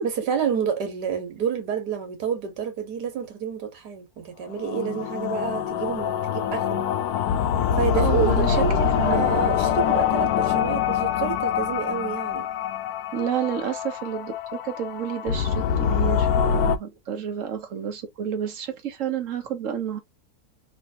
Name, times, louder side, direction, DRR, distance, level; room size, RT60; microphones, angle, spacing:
voice 1, 0.0-6.8 7.8-12.5 17.1-17.2, right 7 dB, 90° right, 1.8 m, -29 dB
sound 1, 4.5-16.8, left 8 dB, 75° left, 1.0 m, -24 dB
voice 2, 7.9-8.6 9.0-9.3 13.1-20.0, right 9 dB, 55° right, 1.1 m, -30 dB
3.2 x 3.1 x 2.6 m
omnidirectional pair, 1.7 m